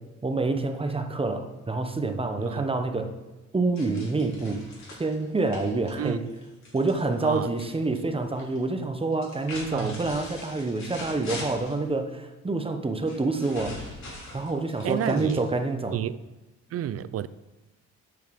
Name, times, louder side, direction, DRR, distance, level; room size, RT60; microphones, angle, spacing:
voice 1, 0.2-3.1 3.5-4.6 5.0-6.2 6.7-13.8 14.3-16.0, right 3 dB, 20° right, 0.9 m, -27 dB
sound 1, 3.7-7.7 7.9-8.6 9.1-11.8 13.0-15.7, left 2 dB, 65° left, 3.7 m, -42 dB
voice 2, 9.7-10.1 14.8-15.4 15.9-16.2 16.7-17.3, right 10 dB, 50° right, 0.5 m, -30 dB
9.1 x 6.4 x 5.2 m
cardioid pair, 90°, 30 cm